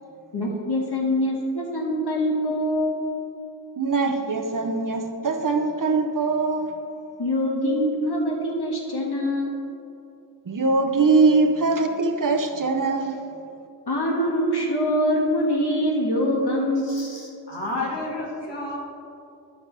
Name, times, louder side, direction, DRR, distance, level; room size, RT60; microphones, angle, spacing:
voice 1, 0.3-3.0 7.2-9.7 13.9-17.1, equal, 70° left, -3 dB, 1.6 m, -24 dB
voice 2, 3.8-6.7 10.5-13.1, right 3 dB, 50° right, 5 dB, 0.7 m, -22 dB
voice 3, 16.8-18.8, left 2 dB, 90° left, -3 dB, 1.6 m, -31 dB
10.0 x 5.8 x 3.3 m, 2.7 s
wide cardioid pair, 70°, 41 cm